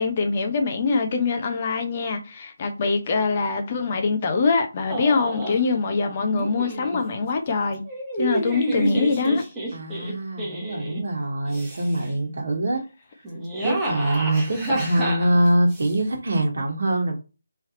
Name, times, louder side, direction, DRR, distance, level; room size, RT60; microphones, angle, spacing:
voice 1, 0.0-7.8 8.2-9.4, left 4 dB, 30° left, 0.6 m, -23 dB
sound 1, 4.9-5.6 6.3-7.0 7.8-11.0 11.5-12.1 13.2-15.9, right 1 dB, 10° right, 1.1 m, -29 dB
voice 2, 9.7-12.8 13.6-17.2, right 1 dB, 55° right, 1.2 m, -23 dB
3.2 x 2.8 x 3.7 m
figure-of-eight pair, 155°, 0 cm